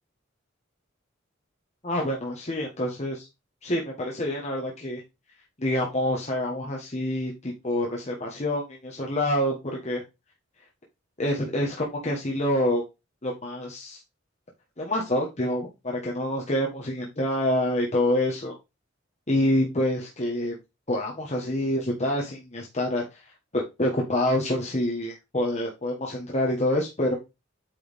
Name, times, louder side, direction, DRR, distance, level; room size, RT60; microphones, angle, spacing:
voice 1, 1.8-3.3 3.6-5.0 5.6-10.0 11.2-12.8 13.2-14.0 14.8-18.6 19.3-20.6 20.9-23.1 23.5-27.1, left 1 dB, 35° left, -2 dB, 1.5 m, -27 dB
8.9 x 4.8 x 3.6 m, 0.24 s
head